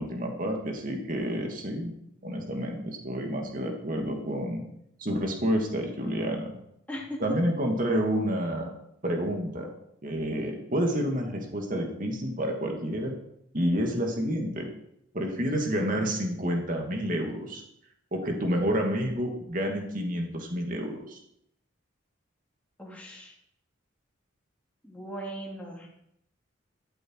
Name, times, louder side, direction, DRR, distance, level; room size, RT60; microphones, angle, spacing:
voice 1, 0.0-1.9 2.2-4.6 5.0-6.5 7.2-8.7 9.0-9.7 10.0-13.1 13.5-14.7 15.1-17.6 18.1-21.2, equal, 40° right, 2 dB, 2.5 m, -29 dB
voice 2, 6.9-7.2 22.8-23.3 24.8-25.9, equal, 5° left, -3 dB, 3.6 m, -38 dB
13.0 x 13.0 x 4.9 m, 0.74 s
head